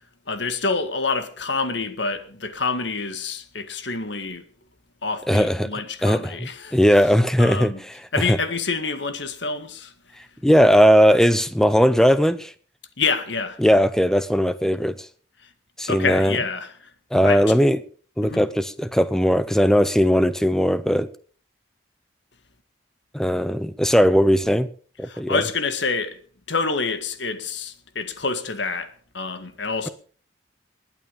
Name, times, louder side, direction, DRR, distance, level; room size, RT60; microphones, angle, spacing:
voice 1, 0.3-4.5 5.0-6.8 7.4-7.8 8.1-9.9 13.0-13.6 15.9-16.7 17.3-17.4 18.2-18.4 25.1-26.2 26.5-29.9, left 4 dB, 70° left, 1.8 m, -27 dB
voice 2, 5.3-5.7 6.0-8.4 10.4-12.5 13.6-15.1 15.8-16.4 17.1-17.8 18.2-21.1 23.1-24.7 25.0-25.4, equal, 5° left, 0.7 m, -18 dB
20.0 x 9.1 x 5.3 m
head